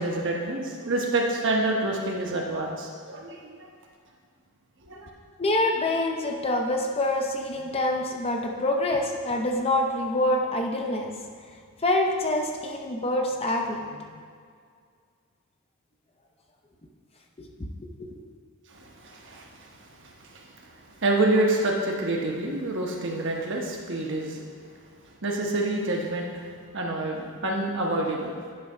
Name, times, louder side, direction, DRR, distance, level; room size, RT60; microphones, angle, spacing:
voice 1, 0.0-3.7 4.9-5.1 18.7-24.5 25.2-26.5 26.7-28.3, right 2 dB, 55° right, 0 dB, 1.1 m, -28 dB
voice 2, 5.4-11.1 11.8-14.0 17.4-17.7 18.0-18.2, left 1 dB, 25° left, 2 dB, 0.6 m, -26 dB
10.0 x 3.4 x 5.5 m, 2.1 s
head